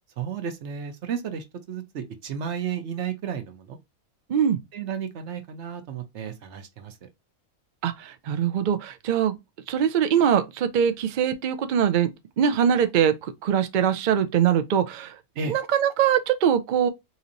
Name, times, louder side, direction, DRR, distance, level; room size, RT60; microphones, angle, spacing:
voice 1, 0.2-3.8 4.7-7.1 15.4-15.5, right 7 dB, 60° right, 1.0 m, -33 dB
voice 2, 7.8-9.4 9.7-12.1 12.4-15.2 15.5-16.9, right 8 dB, 80° right, 0.4 m, -22 dB
4.2 x 2.8 x 2.5 m
omnidirectional pair, 1.5 m